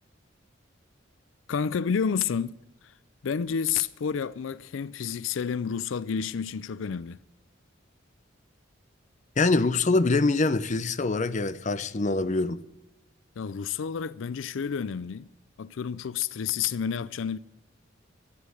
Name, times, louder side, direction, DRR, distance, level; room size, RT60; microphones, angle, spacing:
voice 1, 1.5-2.9 3.2-7.2 13.4-15.3 15.6-17.4, left 7 dB, 80° left, 0.4 m, -30 dB
voice 2, 9.4-12.6, left 3 dB, 40° left, 0.6 m, -24 dB
12.0 x 11.5 x 6.4 m
head